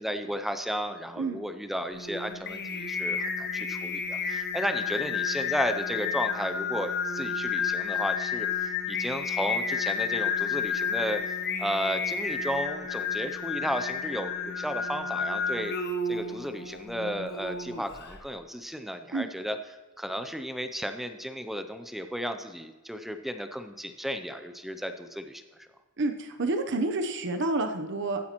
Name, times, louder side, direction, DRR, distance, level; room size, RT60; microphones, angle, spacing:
voice 1, 0.0-11.2 11.6-15.7 16.1-19.6 20.0-25.4, equal, ahead, 8 dB, 0.4 m, -33 dB
Singing, 1.9-18.2, left 5 dB, 50° left, 0.9 m, -31 dB
voice 2, 26.0-28.2, right 2 dB, 60° right, 6 dB, 0.8 m, -29 dB
15.0 x 10.0 x 3.0 m, 1.3 s
head